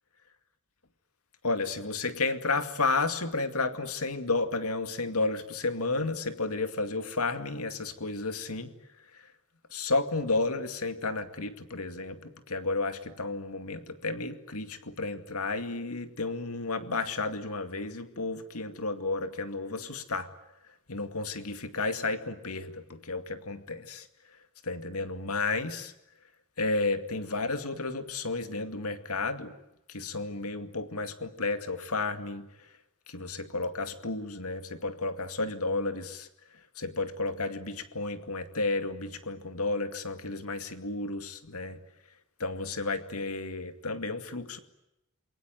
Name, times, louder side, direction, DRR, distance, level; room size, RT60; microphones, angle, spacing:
voice 1, 1.4-8.7 9.1-9.3 9.7-20.3 20.9-24.1 24.6-25.9 26.6-29.5 29.9-32.5 33.1-36.3 36.8-41.8 42.4-44.6, left 3 dB, 80° left, 9 dB, 2.3 m, -32 dB
28.0 x 22.5 x 9.3 m, 0.87 s
head